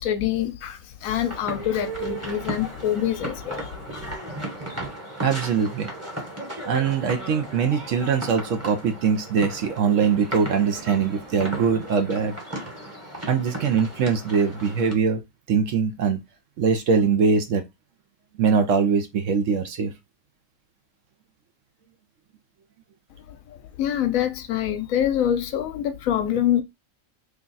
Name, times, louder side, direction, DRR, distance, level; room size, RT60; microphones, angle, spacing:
voice 1, 0.0-4.1 23.3-26.6, left 10 dB, 75° left, 1.0 m, -25 dB
sound 1, 1.2-14.9, right 1 dB, 15° right, 0.8 m, -36 dB
voice 2, 5.2-5.9 6.7-12.4 13.3-15.2 15.5-16.2 16.6-17.6 18.4-19.9, right 6 dB, 65° right, 1.0 m, -22 dB
3.3 x 2.3 x 3.9 m
omnidirectional pair, 1.4 m